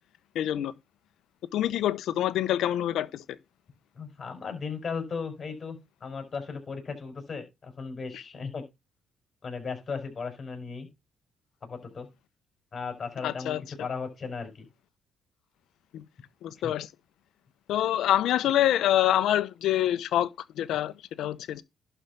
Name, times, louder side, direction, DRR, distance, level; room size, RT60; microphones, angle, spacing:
voice 1, 0.3-0.7 1.5-3.4 13.2-13.6 15.9-16.0 16.4-16.9 17.7-21.6, left 12 dB, 80° left, 0.9 m, -26 dB
voice 2, 3.9-8.6 9.4-10.9 11.6-12.1 12.7-14.7 16.6-16.7, left 5 dB, 40° left, 5.0 m, -36 dB
11.5 x 4.7 x 5.3 m
cardioid pair, 90°, 0 cm